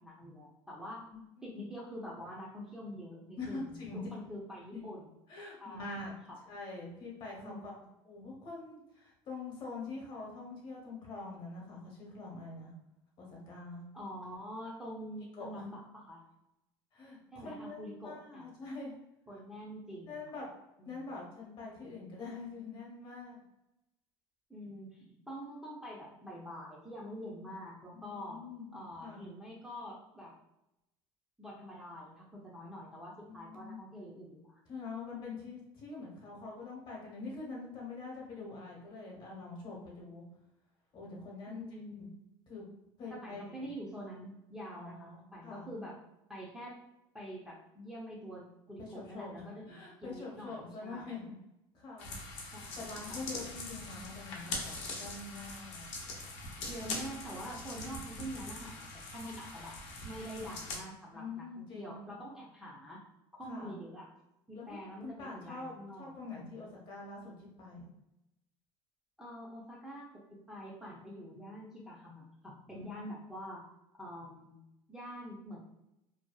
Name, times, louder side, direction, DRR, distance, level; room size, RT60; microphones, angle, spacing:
voice 1, 0.0-1.0 1.4-5.1 5.6-5.9 6.3-6.4 7.4-7.6 13.9-16.2 17.3-18.5 19.3-20.2 20.8-21.1 24.5-28.4 28.7-30.3 31.4-34.6 41.5-42.2 43.1-46.0 46.3-46.8 47.1-51.4 52.5-53.2 56.7-59.7 60.0-63.0 63.3-64.1 64.5-66.1 69.2-73.6 74.0-74.5 74.9-75.6, equal, 5° right, -5 dB, 0.5 m, -46 dB
voice 2, 1.1-1.6 3.4-4.0 4.7-4.8 5.3-6.1 6.5-7.7 8.0-12.7 13.2-13.9 15.3-15.6 16.9-18.9 19.3-19.4 20.0-20.5 20.8-23.4 27.9-29.3 33.2-33.8 34.7-40.2 40.9-41.6 42.5-42.6 43.0-43.7 44.7-45.7 48.8-49.4 49.7-51.3 51.7-52.2 52.8-55.9 61.1-61.9 63.5-63.7 64.5-67.3 67.6-67.9 72.7-73.0, left 3 dB, 45° left, -2 dB, 1.0 m, -45 dB
sound 1, 52.0-60.8, left 3 dB, 75° left, 0.7 m, -42 dB
2.6 x 2.2 x 2.2 m, 0.90 s
cardioid pair, 120°, 11 cm